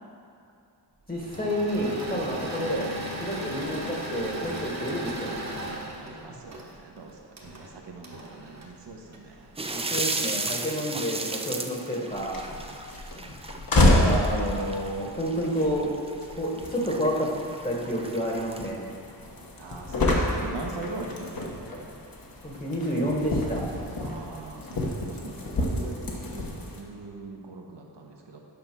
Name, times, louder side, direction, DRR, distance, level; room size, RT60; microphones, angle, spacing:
voice 1, 1.1-2.9 3.2-5.3 9.7-12.4 13.1-13.3 13.7-15.9 16.3-17.3 17.6-18.9 22.4-23.6, equal, 20° left, -2 dB, 1.3 m, -29 dB
Engine / Mechanisms, 1.2-9.6, right 1 dB, 40° right, 1.1 m, -37 dB
voice 2, 6.0-9.5 12.5-12.8 19.6-21.7 24.0-28.4, right 3 dB, 80° right, 1 dB, 1.2 m, -41 dB
sound 1, 9.6-18.7, right 2 dB, 15° right, 0.4 m, -35 dB
sound 2, 12.1-26.8, left 1 dB, 55° left, 1.2 m, -29 dB
8.8 x 5.4 x 6.0 m, 2.5 s
wide cardioid pair, 145°, 41 cm